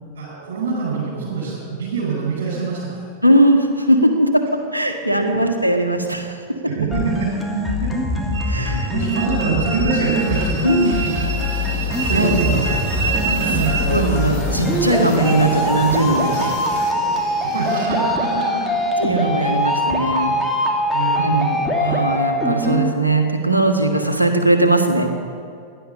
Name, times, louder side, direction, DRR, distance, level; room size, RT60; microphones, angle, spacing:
voice 1, 0.1-3.0 6.6-7.9 8.6-10.6 12.1-12.6 13.5-13.8 17.5-18.6 20.9-21.3, right 5 dB, 65° right, -7 dB, 5.1 m, -25 dB
voice 2, 3.2-6.4 8.5-8.9 10.6-10.9 12.1-12.8 13.5-13.6 13.9-16.5 19.0-20.3 21.2-25.1, right 1 dB, 85° right, 4 dB, 1.7 m, -19 dB
sound 1, 6.9-22.9, left 1 dB, 5° left, 2.3 m, -22 dB
Train, 8.3-20.8, right 4 dB, 45° right, 3.4 m, -28 dB
sound 2, 11.9-16.9, left 6 dB, 40° left, 2.2 m, -35 dB
17.0 x 11.5 x 6.9 m, 2.4 s
figure-of-eight pair, 90°, 0 cm